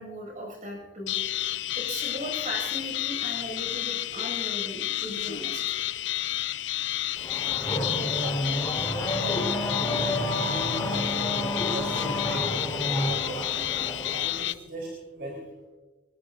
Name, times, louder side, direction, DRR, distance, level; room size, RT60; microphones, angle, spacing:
voice 1, 0.0-1.4 1.7-5.8 13.1-13.2, equal, 40° right, 0 dB, 6.8 m, -38 dB
sound 1, 1.1-14.5, left 14 dB, 65° left, 0.5 m, -31 dB
Race car auto racing / Accelerating revving vroom, 7.2-14.4, left 1 dB, 15° left, 4.8 m, -30 dB
voice 2, 8.0-8.5 9.2-9.4 9.9-11.3 11.5-13.5 14.1-15.4, right 1 dB, 60° right, -2 dB, 4.0 m, -38 dB
23.0 x 21.0 x 2.7 m, 1.2 s
head